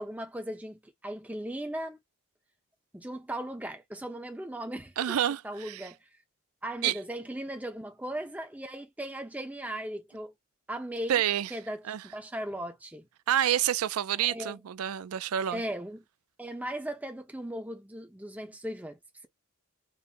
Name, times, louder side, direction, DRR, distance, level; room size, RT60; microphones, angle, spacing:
voice 1, 0.0-2.0 2.9-5.2 5.4-6.0 6.6-10.3 10.7-11.2 11.5-13.1 14.2-14.6 15.5-16.0 16.4-19.3, right 1 dB, 5° right, 0.7 m, -37 dB
voice 2, 5.0-5.9 6.8-7.0 11.1-11.5 11.9-12.0 13.3-15.6, right 10 dB, 90° right, 0.4 m, -28 dB
5.3 x 2.0 x 4.3 m
head